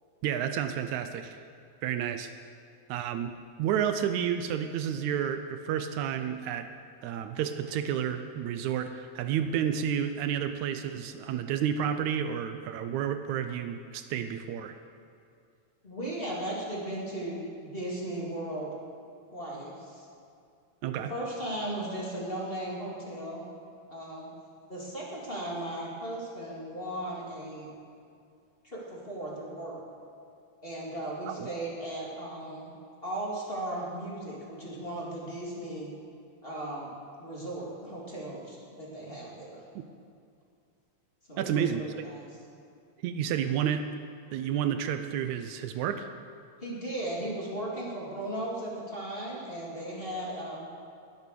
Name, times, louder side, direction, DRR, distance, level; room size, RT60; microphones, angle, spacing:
voice 1, 0.2-1.4 1.8-2.3 2.9-6.7 7.0-14.7 20.8-21.1 31.4-31.5 41.4-41.8 43.0-43.9 44.3-46.1, right 9 dB, 80° right, 8 dB, 2.0 m, -30 dB
voice 2, 15.8-18.7 19.3-20.0 21.1-23.4 23.9-24.3 24.7-27.7 28.6-29.8 30.6-32.7 33.0-35.9 36.4-36.9 37.2-39.6 41.3-42.3 46.6-50.6, right 1 dB, 20° left, -5 dB, 2.7 m, -36 dB
21.5 x 8.2 x 6.8 m, 2.4 s
omnidirectional pair, 3.4 m